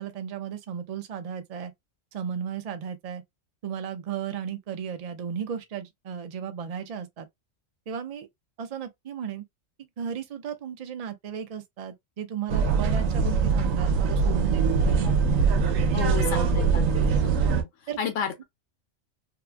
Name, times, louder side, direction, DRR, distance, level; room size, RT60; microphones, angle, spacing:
voice 1, 0.0-1.7 2.1-3.2 3.6-7.3 7.9-8.3 8.6-9.4 10.0-15.1 16.1-16.3 16.6-16.7 17.9-18.0, right 8 dB, 65° right, 0.3 m, -35 dB
sound 1, 12.5-17.6, right 5 dB, 85° right, 1.0 m, -22 dB
voice 2, 15.9-16.8 17.2-17.5 18.0-18.4, left 7 dB, 75° left, 1.0 m, -31 dB
2.7 x 2.2 x 2.4 m
omnidirectional pair, 1.3 m